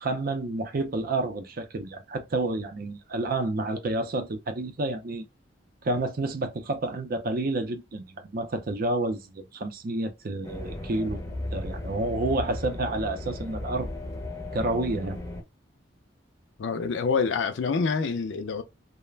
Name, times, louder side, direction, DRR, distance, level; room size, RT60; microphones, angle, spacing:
voice 1, 0.0-5.3 5.8-11.2 11.5-13.9 14.5-15.2, right 2 dB, 50° right, 0.5 m, -29 dB
sound 1, 10.4-15.4, left 1 dB, 15° left, 0.6 m, -35 dB
voice 2, 16.6-18.6, left 5 dB, 65° left, 0.4 m, -26 dB
2.3 x 2.1 x 3.2 m
head